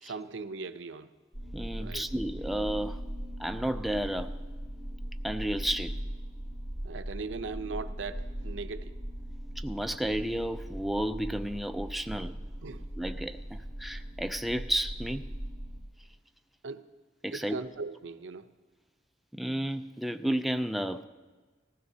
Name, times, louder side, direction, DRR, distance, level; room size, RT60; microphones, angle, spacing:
voice 1, 0.0-1.1 1.8-2.1 6.8-9.0 12.6-12.9 16.6-16.9 17.3-18.5, right 4 dB, 80° right, 0.6 m, -39 dB
sound 1, 1.3-15.8, equal, 20° left, 3.6 m, -39 dB
voice 2, 1.5-3.0 3.4-4.3 5.2-6.0 9.6-12.4 13.0-15.3 17.2-17.6 19.3-21.0, right 1 dB, ahead, 0.3 m, -32 dB
19.0 x 15.0 x 2.8 m
head